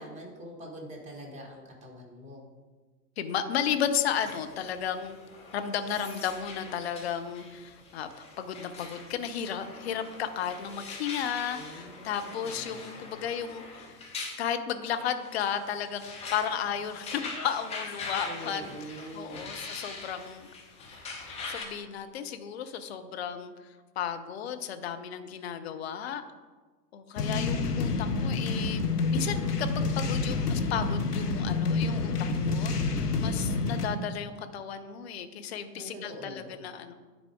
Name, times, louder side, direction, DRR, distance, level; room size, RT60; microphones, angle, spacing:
voice 1, 0.0-2.5 11.5-13.2 18.3-19.5 35.7-36.6, right 1 dB, 15° right, 0 dB, 1.4 m, -44 dB
voice 2, 3.2-5.2 5.5-14.0 14.4-18.7 19.1-20.5 21.5-23.5 24.0-26.2 26.9-28.8 29.1-36.9, left 8 dB, 40° left, 8 dB, 0.7 m, -34 dB
sound 1, 4.1-21.6, left 3 dB, 15° left, 1.0 m, -43 dB
sound 2, 27.2-33.9, left 4 dB, 70° left, 1.0 m, -28 dB
9.8 x 4.1 x 4.7 m, 1.3 s
figure-of-eight pair, 105°, 48 cm